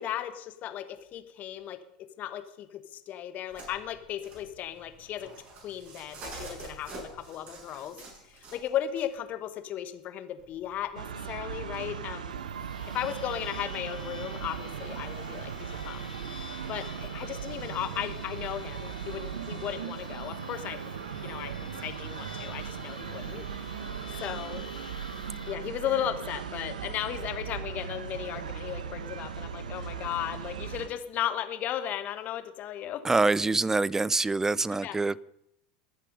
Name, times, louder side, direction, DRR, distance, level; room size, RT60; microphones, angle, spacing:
voice 1, 0.0-1.8 2.2-5.3 5.6-8.0 8.3-12.4 12.9-16.1 16.7-20.8 21.2-21.5 21.8-23.4 24.2-24.6 25.5-33.3 34.8-35.0, left 11 dB, 40° left, 9 dB, 1.3 m, -35 dB
sound 1, 3.5-9.1 10.4-11.2, right 2 dB, 45° right, 6.8 m, -46 dB
sound 2, 11.0-30.9, right 7 dB, 75° right, 1.3 m, -38 dB
sound 3, 12.3-25.5, left 6 dB, 80° left, 0.6 m, -49 dB
voice 2, 33.0-35.2, right 3 dB, 10° right, 23 dB, 0.4 m, -25 dB
21.0 x 7.5 x 5.4 m, 0.78 s
figure-of-eight pair, 80°, 4 cm